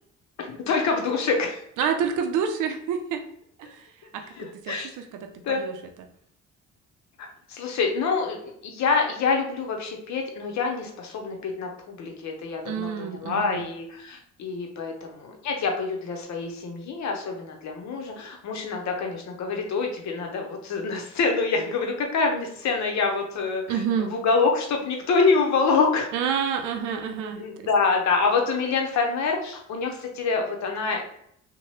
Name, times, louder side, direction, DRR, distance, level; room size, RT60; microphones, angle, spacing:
voice 1, 0.4-1.6 4.4-4.9 5.4-5.6 7.2-23.6 24.0-26.1 27.0-31.0, left 4 dB, 65° left, 2 dB, 0.8 m, -26 dB
voice 2, 1.8-3.2 3.6-3.8 4.1-5.7 12.6-13.7 23.7-24.1 26.1-27.4, right 7 dB, 85° right, 5 dB, 0.5 m, -28 dB
2.8 x 2.2 x 3.1 m, 0.69 s
cardioid pair, 90°, 30 cm